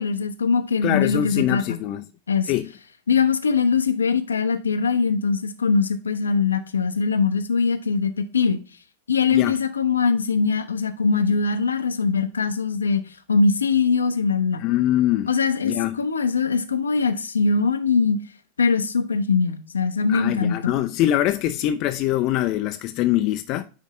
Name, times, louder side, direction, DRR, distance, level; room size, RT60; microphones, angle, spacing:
voice 1, 0.0-1.8 2.3-2.5 3.1-8.6 9.1-14.6 15.3-18.2 18.6-20.8, left 5 dB, 75° left, 0.7 m, -22 dB
voice 2, 0.8-2.0 2.5-2.7 9.3-9.6 14.6-15.3 15.6-16.0 20.1-23.6, left 13 dB, 40° left, 0.4 m, -23 dB
9.4 x 3.6 x 3.0 m
figure-of-eight pair, 90°, 0 cm